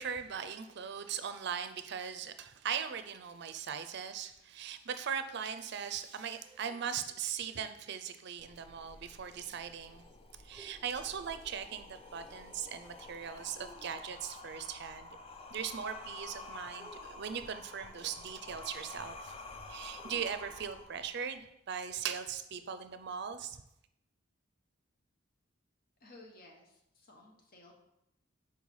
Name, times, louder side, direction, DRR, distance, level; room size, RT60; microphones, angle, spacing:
voice 1, 0.0-10.0 10.4-15.1 15.5-19.4 19.7-23.6, right 7 dB, 60° right, 10 dB, 0.5 m, -39 dB
sound 1, 6.3-8.0 10.5-11.7 13.6-14.4 16.8-17.9 19.9-21.1, equal, 5° right, 0.7 m, -61 dB
sound 2, 8.4-21.4, left 2 dB, 30° left, 0.5 m, -50 dB
voice 2, 26.0-27.7, left 2 dB, 50° left, 1 dB, 1.3 m, -56 dB
4.8 x 4.4 x 5.4 m, 0.81 s
head